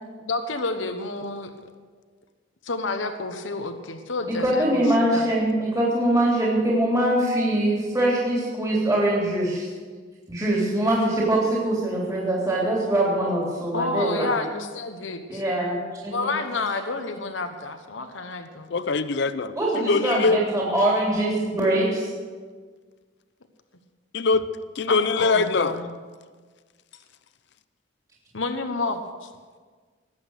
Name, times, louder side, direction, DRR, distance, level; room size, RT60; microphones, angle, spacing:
voice 1, 0.2-1.5 2.6-5.3 10.1-10.2 13.7-15.4 16.1-18.7 24.9-25.9 28.3-29.3, left 3 dB, 80° left, 7 dB, 1.1 m, -30 dB
voice 2, 4.3-9.7 10.3-14.3 15.3-16.3 19.6-22.1, right 1 dB, 20° right, -5 dB, 3.4 m, -23 dB
voice 3, 18.7-20.4 24.1-24.5 24.8-25.7, left 4 dB, 65° left, 13 dB, 0.6 m, -22 dB
20.0 x 8.2 x 6.5 m, 1.5 s
head